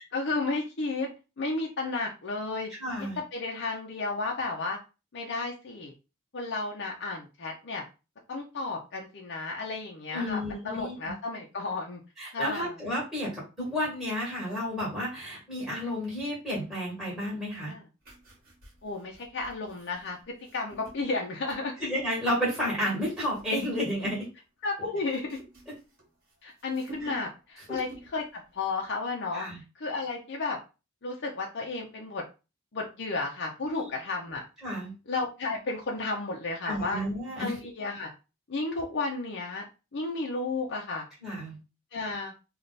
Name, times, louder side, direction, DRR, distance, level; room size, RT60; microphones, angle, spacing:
voice 1, 0.1-1.1 1.4-2.7 3.2-4.8 5.1-5.9 6.3-7.8 8.3-12.0 12.3-12.7 17.6-17.8 18.8-21.9 24.6-25.3 26.4-29.5 29.8-30.6 31.0-32.2 32.7-34.4 35.1-37.0 37.4-38.1 38.5-39.6 39.9-41.1 41.9-42.3, left 3 dB, 55° left, 0 dB, 0.7 m, -33 dB
voice 2, 2.8-3.2 10.1-11.1 12.2-17.7 21.8-24.3 24.8-24.9 25.7-25.8 27.0-27.1 27.7-27.8 29.3-29.6 33.7-33.9 34.6-34.9 36.6-37.6 41.2-41.6, equal, ahead, -7 dB, 1.8 m, -31 dB
sound 1, 18.0-21.9 22.5-24.3 24.6-26.3 26.6-27.4 27.7-28.2 28.5-28.7, right 1 dB, 45° right, 1.6 m, -50 dB
3.3 x 2.5 x 4.0 m, 0.30 s
head